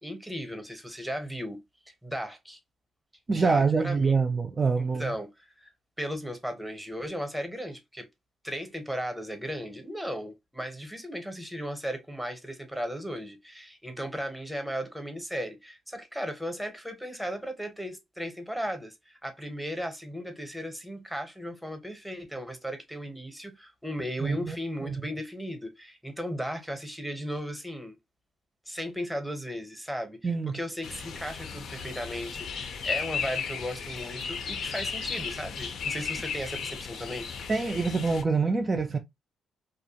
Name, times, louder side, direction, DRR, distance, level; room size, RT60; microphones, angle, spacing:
voice 1, 0.0-1.6 2.0-2.6 3.3-4.2 4.8-5.7 6.0-8.1 8.4-28.0 28.7-37.3, equal, ahead, 0.7 m, -36 dB
voice 2, 3.3-5.1 24.2-24.6 24.8-25.0 30.2-30.6 37.5-39.0, right 4 dB, 30° right, 0.3 m, -25 dB
sound 1, 30.8-38.2, left 6 dB, 65° left, 0.5 m, -35 dB
2.4 x 2.1 x 2.7 m
cardioid pair, 90°, 0 cm